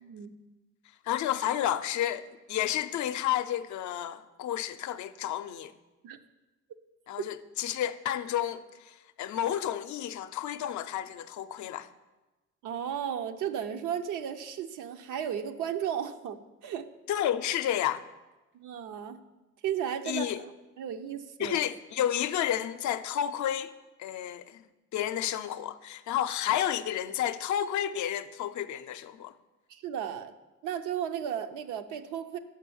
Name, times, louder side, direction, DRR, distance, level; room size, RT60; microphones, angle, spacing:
voice 1, 0.0-0.3 6.0-6.2 12.6-16.9 18.5-19.2 19.6-20.2 20.8-21.6 29.7-30.3 30.6-32.4, right 9 dB, 85° right, 0.6 m, -34 dB
voice 2, 1.0-5.7 7.1-11.9 17.1-18.1 20.0-20.4 21.4-23.7 24.0-24.6 24.9-29.3, left 11 dB, 70° left, 0.5 m, -31 dB
6.2 x 5.5 x 7.0 m
cardioid pair, 90°, 30 cm